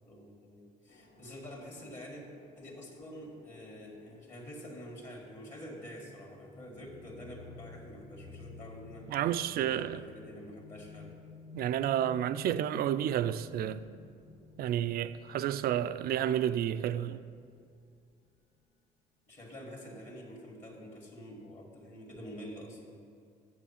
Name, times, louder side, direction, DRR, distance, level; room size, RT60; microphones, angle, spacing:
voice 1, 0.0-2.2 2.6-9.1 9.6-11.1 19.3-23.0, equal, 40° left, 1.9 m, -47 dB
sound 1, 0.9-18.0, left 4 dB, 55° left, 1.1 m, -54 dB
voice 2, 9.1-10.0 11.5-13.8 14.6-17.2, right 11 dB, 60° right, 0.4 m, -30 dB
7.4 x 7.1 x 5.7 m
supercardioid pair, 80°, 18 cm